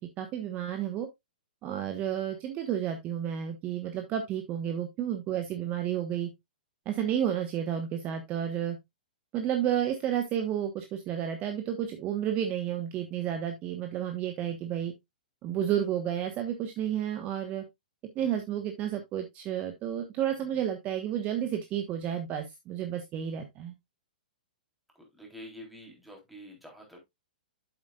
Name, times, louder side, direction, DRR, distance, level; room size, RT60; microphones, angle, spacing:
voice 1, 0.2-1.1 1.6-6.3 6.8-8.8 9.3-14.9 15.4-17.6 18.1-23.7, right 10 dB, 30° right, 6 dB, 1.2 m, -31 dB
voice 2, 25.0-27.0, equal, ahead, 0 dB, 3.5 m, -47 dB
8.7 x 7.4 x 2.4 m, 0.18 s
hypercardioid pair, 130°, 5 cm